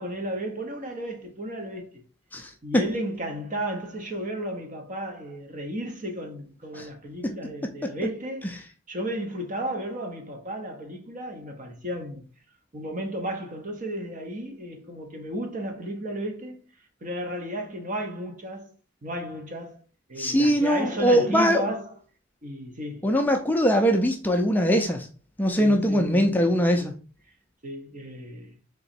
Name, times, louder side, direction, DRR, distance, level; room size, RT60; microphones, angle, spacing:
voice 1, 0.0-2.0 2.6-12.2 12.7-16.6 17.0-18.7 19.0-19.8 20.1-21.9 22.4-23.1 25.6-26.9 27.6-28.5, right 1 dB, 40° right, 0.9 m, -34 dB
voice 2, 2.3-2.8 6.8-6.9 7.2-7.3 20.2-21.7 23.0-25.1 25.4-26.9, equal, 10° left, 0.4 m, -22 dB
3.8 x 2.9 x 4.3 m
head